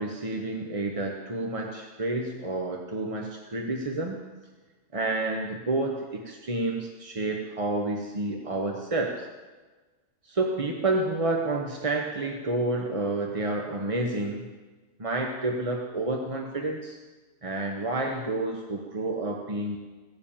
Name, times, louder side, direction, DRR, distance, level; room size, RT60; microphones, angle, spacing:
voice 1, 0.0-4.2 4.9-9.3 10.2-14.5 15.0-17.0 17.4-19.8, right 2 dB, 25° right, 2 dB, 0.8 m, -29 dB
16.0 x 7.4 x 8.8 m, 1.3 s
omnidirectional pair, 1.7 m